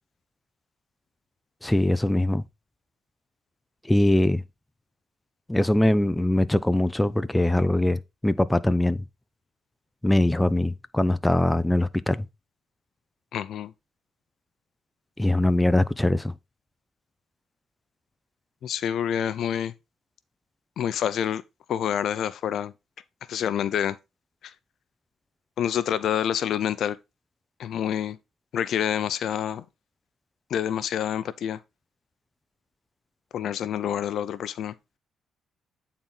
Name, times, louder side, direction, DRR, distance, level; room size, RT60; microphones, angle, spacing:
voice 1, 1.6-2.4 3.9-4.4 5.5-9.0 10.0-12.2 15.2-16.3, left 1 dB, 10° left, 0.6 m, -22 dB
voice 2, 13.3-13.7 18.6-19.7 20.8-21.4 21.7-22.7 23.3-24.0 24.4-24.5 25.6-27.0 27.6-28.2 28.5-29.6 30.5-31.6 33.3-34.7, left 9 dB, 70° left, 0.6 m, -27 dB
9.0 x 4.2 x 3.9 m
cardioid pair, 90°, 0 cm